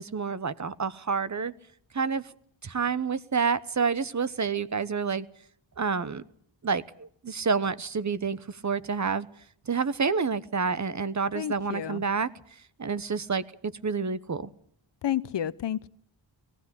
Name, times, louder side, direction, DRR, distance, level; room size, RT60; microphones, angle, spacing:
voice 1, 0.0-1.5 1.9-2.3 2.6-5.3 5.8-6.2 6.6-9.3 9.7-12.3 12.8-14.5, right 5 dB, 40° right, 1.0 m, -28 dB
voice 2, 11.3-12.0 15.0-15.9, left 10 dB, 65° left, 0.9 m, -30 dB
18.5 x 15.5 x 9.7 m
cardioid pair, 60°, 46 cm